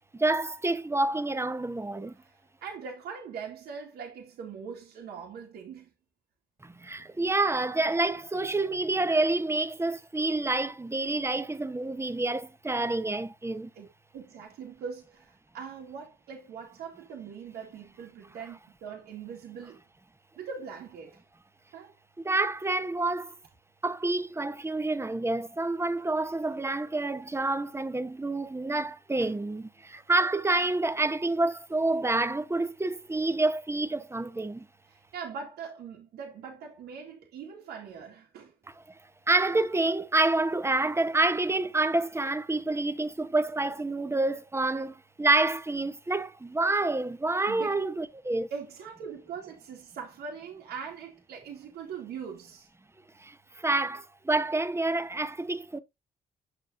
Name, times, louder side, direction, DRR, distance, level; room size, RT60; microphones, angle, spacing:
voice 1, 0.1-2.1 6.6-13.7 22.2-23.3 23.8-34.7 39.3-48.5 53.2-55.8, right 2 dB, 15° right, 1.1 m, -28 dB
voice 2, 2.2-5.9 13.7-13.9 14.1-19.8 20.4-21.2 21.7-21.9 29.2-29.3 30.4-30.6 34.9-38.5 47.5-47.8 48.5-52.7, right 6 dB, 85° right, 2.0 m, -41 dB
7.9 x 7.2 x 2.7 m
supercardioid pair, 60°, 16 cm